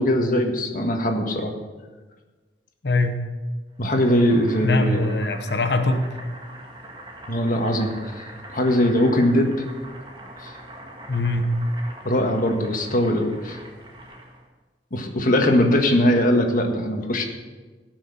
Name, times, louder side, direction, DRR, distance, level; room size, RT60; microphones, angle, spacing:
voice 1, 0.0-1.5 3.8-5.1 7.3-8.2 8.5-9.6 10.4-10.5 12.0-13.6 14.9-17.2, left 1 dB, 50° left, 3 dB, 1.7 m, -21 dB
voice 2, 2.8-3.2 4.6-6.1 11.1-11.6, left 2 dB, 70° left, 6 dB, 1.0 m, -22 dB
Boiling, 3.8-14.5, right 1 dB, 25° right, 2.0 m, -42 dB
17.0 x 6.4 x 6.5 m, 1.3 s
head